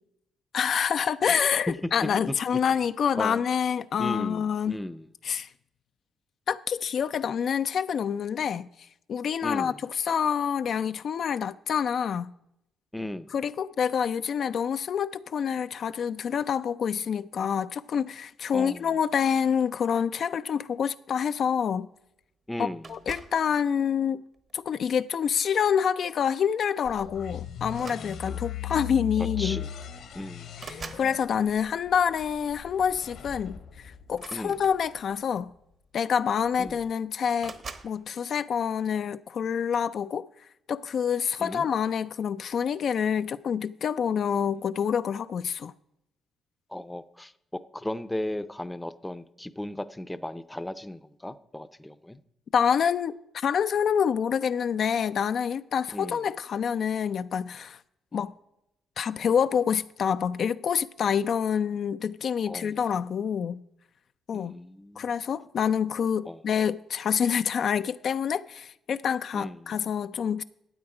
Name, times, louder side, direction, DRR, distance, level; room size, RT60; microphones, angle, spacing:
voice 1, 0.5-4.8 5.2-5.5 6.5-8.7 9.1-12.3 13.3-21.9 22.6-24.2 24.5-29.6 30.7-35.5 35.9-37.6 37.8-40.3 40.7-45.7 52.5-57.8 58.1-58.3 59.0-63.6 64.3-64.6 65.0-70.4, left 7 dB, 60° left, 0.4 m, -27 dB
voice 2, 2.0-2.3 3.1-3.4 4.0-5.1 9.4-9.8 12.9-13.3 18.5-18.9 22.5-22.9 28.2-28.4 29.2-29.7 30.1-30.5 34.3-34.6 36.6-36.8 41.4-41.7 46.7-52.2 55.9-56.2 58.1-58.2 62.5-62.8 64.3-65.1 66.2-66.4 69.3-69.8, left 1 dB, 10° left, 0.6 m, -36 dB
sound 1, 22.8-23.5 24.3-24.7 26.2-26.3 26.6-26.8 27.7-28.5 29.5-29.6 29.9-31.1 34.1-35.2 36.1-36.2 36.4-36.9 37.4-38.0, right 4 dB, 45° right, 1.1 m, -44 dB
sound 2, 26.9-34.7, left 11 dB, 75° left, 1.5 m, -38 dB
12.5 x 8.7 x 4.9 m
cardioid pair, 90°, 0 cm